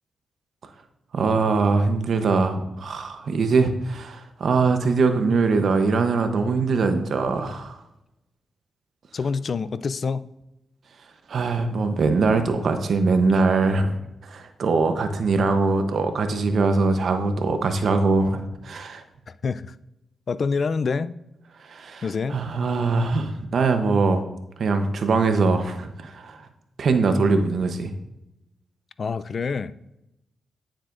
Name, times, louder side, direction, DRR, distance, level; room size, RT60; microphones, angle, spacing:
voice 1, 1.1-7.8 11.3-19.0 21.6-22.0 22.3-24.2 24.6-26.5 26.8-27.9, right 4 dB, 65° right, 0.8 m, -22 dB
voice 2, 9.1-10.3 19.4-19.7 20.3-21.2 22.0-22.4 29.0-29.7, left 5 dB, 55° left, 0.3 m, -26 dB
9.2 x 7.5 x 2.5 m
cardioid pair, 70°, 0 cm